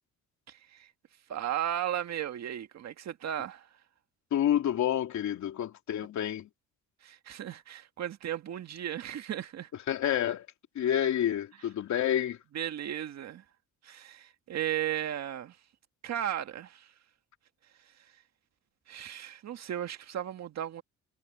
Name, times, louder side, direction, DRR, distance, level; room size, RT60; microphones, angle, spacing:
voice 1, 0.5-0.9 1.3-3.7 7.0-9.7 12.5-13.4 13.8-15.6 16.0-16.9 18.9-20.8, right 11 dB, 60° right, 1.8 m, -35 dB
voice 2, 4.3-6.5 9.9-10.5 10.7-12.4, left 10 dB, 65° left, 3.0 m, -28 dB
cardioid pair, 110°, 31 cm